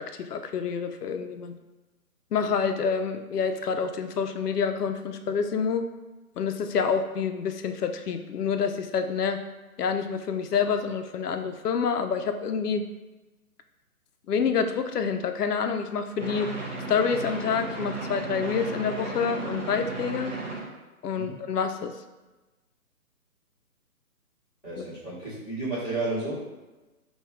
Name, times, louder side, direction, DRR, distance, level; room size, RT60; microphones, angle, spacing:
voice 1, 0.0-1.6 2.3-5.8 6.4-9.4 9.8-12.8 14.3-16.5 16.9-20.3 21.0-21.9, left 6 dB, 90° left, 7 dB, 0.6 m, -27 dB
sound 1, 16.2-20.7, right 2 dB, 55° right, 1.4 m, -35 dB
voice 2, 24.6-26.4, right 2 dB, 5° right, -25 dB, 0.9 m, -32 dB
3.8 x 2.4 x 4.3 m, 1.1 s
hypercardioid pair, 160°, 45 cm